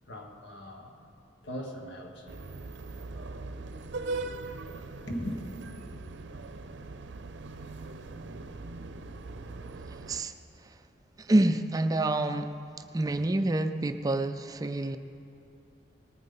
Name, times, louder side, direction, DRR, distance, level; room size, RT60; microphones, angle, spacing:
voice 1, 0.1-1.0 1.4-2.3 5.0-5.4, equal, 75° left, 2 dB, 1.5 m, -38 dB
sound 1, 2.3-10.2, right 3 dB, 75° right, 0.5 m, -40 dB
voice 2, 9.9-10.3 11.2-12.5 12.9-15.0, right 2 dB, 20° right, 8 dB, 0.3 m, -27 dB
19.5 x 8.9 x 3.9 m, 2.8 s
head